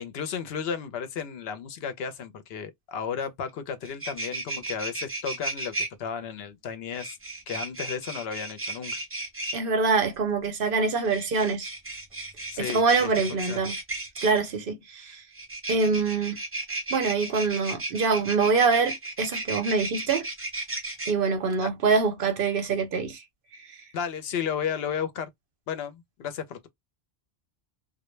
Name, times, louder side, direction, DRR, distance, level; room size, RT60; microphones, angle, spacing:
voice 1, 0.0-7.1 7.5-9.0 12.5-13.1 13.5-13.7 21.6-21.7 23.9-25.3 25.7-26.7, left 7 dB, 70° left, 0.8 m, -33 dB
sound 1, 3.5-3.6 3.8-5.9 6.9-9.6 11.0-14.4 15.3-21.1, right 2 dB, 20° right, 0.4 m, -34 dB
voice 2, 9.5-11.7 12.6-13.7 14.2-15.2 15.7-16.4 16.9-20.3 21.1-23.2, right 4 dB, 60° right, 0.7 m, -25 dB
2.1 x 2.0 x 3.0 m
omnidirectional pair, 1.1 m